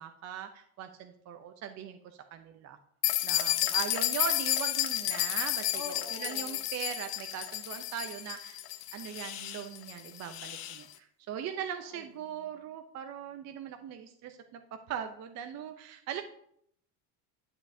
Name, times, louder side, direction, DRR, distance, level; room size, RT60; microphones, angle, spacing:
voice 1, 0.0-2.0 2.3-2.8 3.2-5.8 6.2-8.6 8.9-16.2, right 9 dB, 35° right, 7 dB, 0.6 m, -40 dB
sound 1, 3.0-10.8, left 14 dB, 50° left, 0.7 m, -32 dB
voice 2, 5.7-6.7 11.3-12.5, left 4 dB, 25° left, -1 dB, 1.6 m, -47 dB
10.5 x 7.0 x 2.7 m, 0.69 s
cardioid pair, 135°, 46 cm